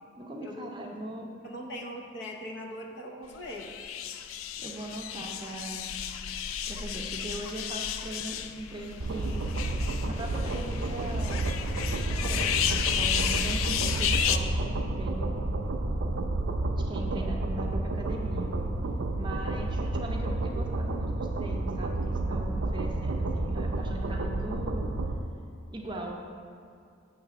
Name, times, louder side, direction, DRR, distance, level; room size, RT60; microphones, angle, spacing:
voice 1, 0.2-1.3 4.6-5.9 6.7-9.4 10.1-11.5 12.1-15.3 16.7-18.6 19.1-24.9 25.7-26.1, right 1 dB, 25° right, 0 dB, 0.5 m, -39 dB
voice 2, 1.4-3.7, equal, 60° left, 0 dB, 0.8 m, -40 dB
sound 1, 3.5-14.4, left 9 dB, 90° left, 0.3 m, -33 dB
sound 2, 9.0-25.1, right 2 dB, 70° right, 0.4 m, -30 dB
6.7 x 3.3 x 5.9 m, 2.3 s
head